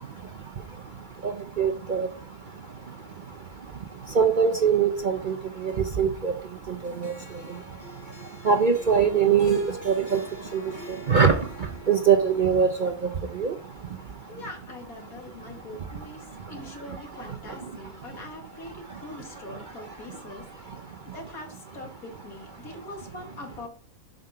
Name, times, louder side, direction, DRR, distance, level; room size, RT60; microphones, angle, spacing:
voice 1, 1.2-2.1 4.2-5.4 6.0-6.3 6.8-7.1 8.4-10.2 10.5-10.6 11.1-11.4 11.9-12.9 13.4-13.5, right 6 dB, 45° right, 4 dB, 0.6 m, -22 dB
Harp, 6.8-13.2, equal, 10° left, 2.1 m, -45 dB
voice 2, 14.3-20.5 21.1-23.7, left 2 dB, 80° left, 2 dB, 2.5 m, -42 dB
7.6 x 5.5 x 5.7 m, 0.42 s
omnidirectional pair, 1.5 m